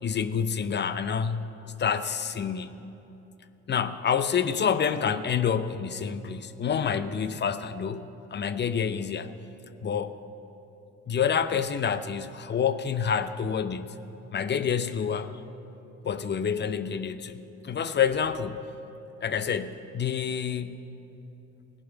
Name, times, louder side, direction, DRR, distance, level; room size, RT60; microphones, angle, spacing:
voice 1, 0.0-2.8 3.7-9.3 9.8-10.2 11.1-14.0 14.3-15.4 16.0-18.6 19.2-20.8, left 7 dB, 35° left, 12 dB, 0.6 m, -28 dB
17.0 x 6.0 x 9.0 m, 3.0 s
cardioid pair, 90°, 30 cm